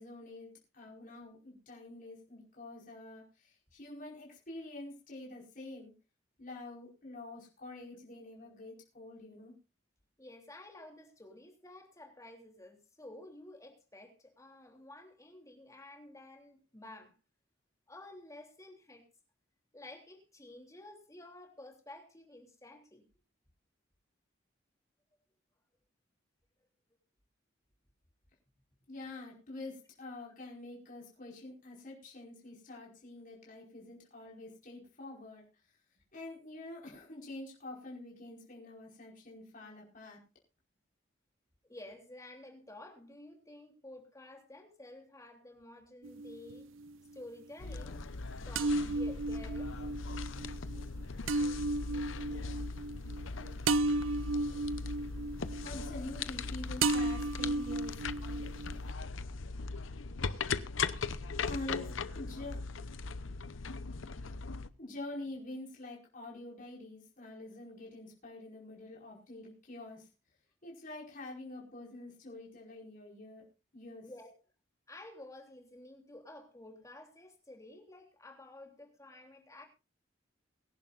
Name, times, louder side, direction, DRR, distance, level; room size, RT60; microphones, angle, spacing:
voice 1, 0.0-5.9 6.4-9.5 28.9-35.4 36.1-40.2 55.6-58.0 61.5-62.6 64.8-70.1 70.6-73.4 73.7-74.1, left 2 dB, 45° left, 5.0 m, -46 dB
voice 2, 10.2-17.1 17.9-19.1 19.7-23.0 41.6-46.7 47.1-49.8 74.0-74.3 74.9-79.7, left 1 dB, 15° left, 3.2 m, -52 dB
sound 1, 46.0-46.9 48.6-56.5 56.8-58.9, right 2 dB, 80° right, 0.6 m, -34 dB
sound 2, 47.6-64.7, left 4 dB, 75° left, 0.8 m, -39 dB
23.5 x 11.0 x 2.5 m
head